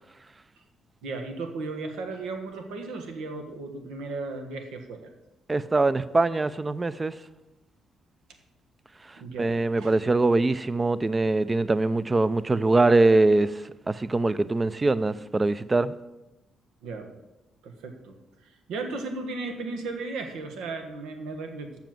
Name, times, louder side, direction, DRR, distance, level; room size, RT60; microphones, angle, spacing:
voice 1, 1.0-5.0 9.2-9.9 16.8-17.1 17.6-18.2 18.4-21.8, right 3 dB, 90° right, 1.3 m, -35 dB
voice 2, 5.5-7.1 9.4-13.5 13.9-15.9, right 2 dB, 25° right, 0.4 m, -23 dB
7.1 x 5.9 x 7.6 m
cardioid pair, 90°, 0 cm